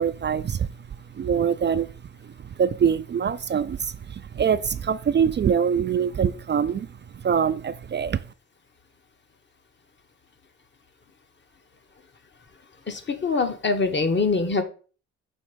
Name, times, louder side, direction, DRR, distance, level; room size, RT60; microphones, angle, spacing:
voice 1, 0.0-1.9 2.2-8.2, right 7 dB, 35° right, 0.4 m, -24 dB
voice 2, 12.9-14.6, left 4 dB, 35° left, 1.1 m, -24 dB
6.3 x 3.5 x 5.0 m
supercardioid pair, 60°, 32 cm